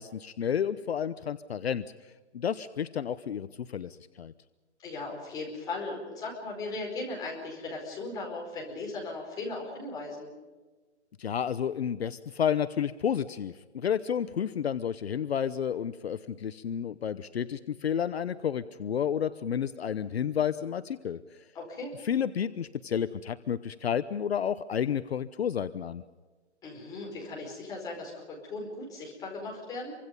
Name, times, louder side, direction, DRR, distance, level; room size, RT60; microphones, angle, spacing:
voice 1, 0.0-1.8 2.3-4.3 11.2-21.2 22.0-26.0, left 8 dB, 60° left, 13 dB, 0.9 m, -31 dB
voice 2, 4.8-10.3 21.5-21.9 26.6-29.9, left 3 dB, 10° left, -2 dB, 4.9 m, -37 dB
28.5 x 24.5 x 5.4 m, 1.3 s
hypercardioid pair, 165°, 35 cm